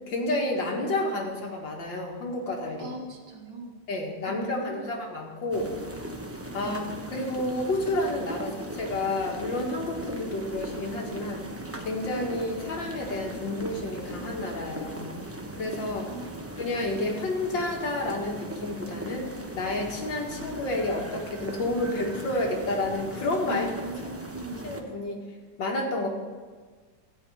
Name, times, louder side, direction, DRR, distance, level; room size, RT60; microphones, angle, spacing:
voice 1, 0.1-2.9 3.9-5.7 6.5-6.8 7.1-11.4 11.8-15.1 15.5-16.1 16.6-23.7 24.6-25.2 25.6-26.1, left 2 dB, 90° left, 0 dB, 2.5 m, -30 dB
voice 2, 2.8-3.7 4.3-5.0 6.6-6.8 16.1-16.5 23.5-24.7, right 2 dB, 85° right, 1 dB, 2.3 m, -39 dB
sound 1, 5.5-24.8, right 1 dB, 20° right, 0.3 m, -39 dB
14.0 x 5.1 x 8.6 m, 1.4 s
omnidirectional pair, 2.0 m